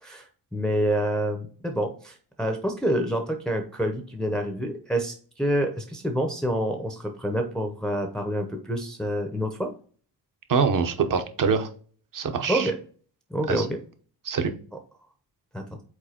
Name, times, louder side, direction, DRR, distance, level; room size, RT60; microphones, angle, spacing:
voice 1, 0.0-9.7 12.5-12.8 13.3-13.8 15.5-15.6, equal, ahead, 4 dB, 0.7 m, -27 dB
voice 2, 10.5-11.7 12.1-12.7 13.5-13.7 14.2-14.5, right 5 dB, 50° right, 7 dB, 1.0 m, -24 dB
5.0 x 4.4 x 4.3 m, 0.43 s
wide cardioid pair, 150°, 42 cm